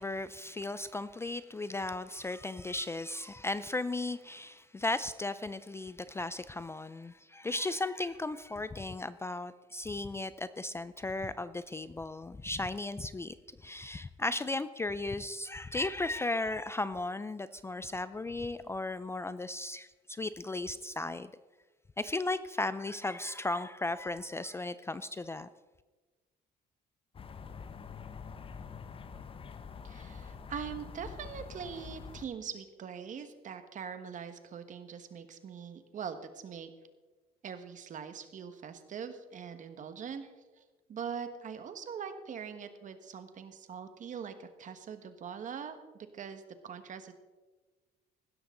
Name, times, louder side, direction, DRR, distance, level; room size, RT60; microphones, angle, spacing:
voice 1, 0.0-21.3 22.0-25.5, left 2 dB, 15° left, 14 dB, 0.4 m, -36 dB
sound 1, 27.1-32.2, left 6 dB, 35° left, 0.9 m, -46 dB
voice 2, 29.8-36.7 37.4-40.3 40.6-40.7 40.9-45.8 46.1-47.1, right 7 dB, 50° right, 9 dB, 1.5 m, -42 dB
16.0 x 12.5 x 3.8 m, 1.3 s
cardioid pair, 110°, 17 cm